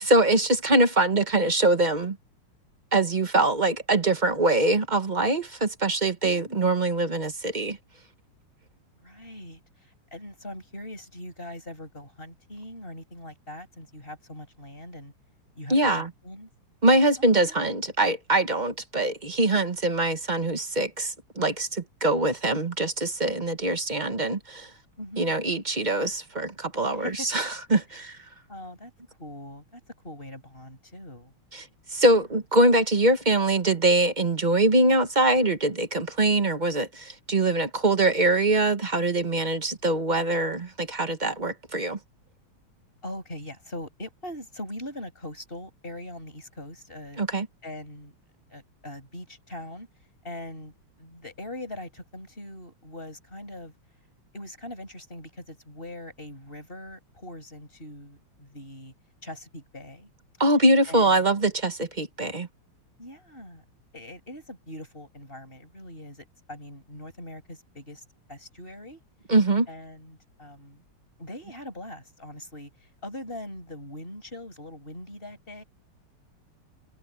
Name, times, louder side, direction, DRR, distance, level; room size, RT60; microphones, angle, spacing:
voice 1, 0.0-2.2 2.9-7.8 15.7-16.1 16.8-24.7 25.2-28.2 31.5-42.0 47.2-47.5 60.4-62.5 69.3-69.7, right 2 dB, 30° right, 0.9 m, -23 dB
voice 2, 6.2-6.7 9.0-15.1 15.5-16.5 17.4-17.6 25.0-25.3 26.9-27.3 27.9-28.0 28.5-28.9 29.2-31.3 32.1-32.2 43.0-47.2 47.6-48.1 48.5-49.9 50.2-53.7 54.3-58.9 59.2-60.1 60.9-61.2 63.0-63.6 63.9-69.0 69.7-70.8 71.2-75.6, left 1 dB, 25° left, 8.4 m, -41 dB
omnidirectional pair, 2.4 m